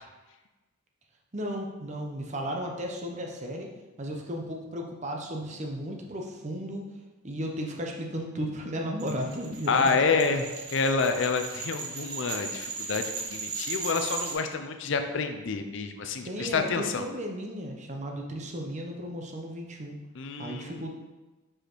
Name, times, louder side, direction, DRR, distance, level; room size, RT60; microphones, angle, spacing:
voice 1, 1.3-6.9 7.2-10.4 16.2-20.0 20.4-20.9, equal, 35° right, 1 dB, 0.7 m, -35 dB
sound 1, 9.0-14.3, right 5 dB, 85° right, 1.1 m, -37 dB
voice 2, 9.7-17.0 20.2-20.9, left 4 dB, 55° left, 7 dB, 0.5 m, -28 dB
5.0 x 4.9 x 4.5 m, 1.2 s
head